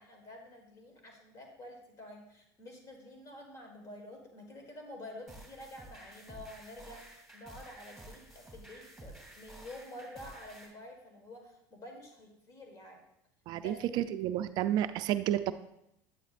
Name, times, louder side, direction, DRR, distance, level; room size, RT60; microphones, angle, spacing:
voice 1, 0.0-13.0 13.5-13.8, left 1 dB, 40° left, 3 dB, 1.5 m, -49 dB
sound 1, 5.3-10.7, right 1 dB, ahead, 2.5 m, -52 dB
voice 2, 13.5-15.5, right 12 dB, 60° right, 11 dB, 0.3 m, -31 dB
9.2 x 8.6 x 2.5 m, 0.81 s
supercardioid pair, 115°, 8 cm